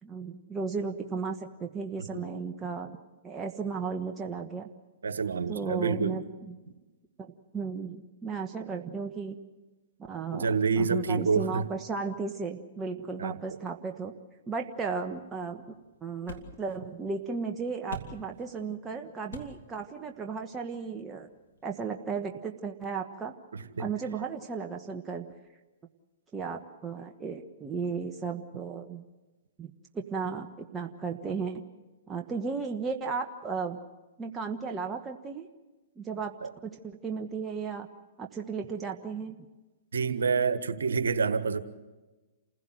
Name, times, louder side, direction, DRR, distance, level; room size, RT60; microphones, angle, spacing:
voice 1, 0.0-3.0 3.2-4.7 5.5-6.5 7.2-7.3 7.5-9.4 10.1-14.1 14.5-15.6 16.0-21.3 21.6-23.3 23.8-25.3 26.3-29.0 29.6-31.6 32.1-33.8 34.2-35.5 36.0-36.3 36.6-37.9 38.2-39.5, right 5 dB, 20° right, 3 dB, 1.2 m, -35 dB
voice 2, 5.0-6.2 10.3-11.7 13.2-13.6 23.5-23.9 36.4-36.5 39.9-41.6, right 5 dB, 80° right, 11 dB, 1.5 m, -28 dB
sound 1, 14.6-21.7, left 2 dB, 80° left, 2.6 m, -49 dB
28.5 x 16.0 x 7.8 m, 1.2 s
hypercardioid pair, 120°, 0 cm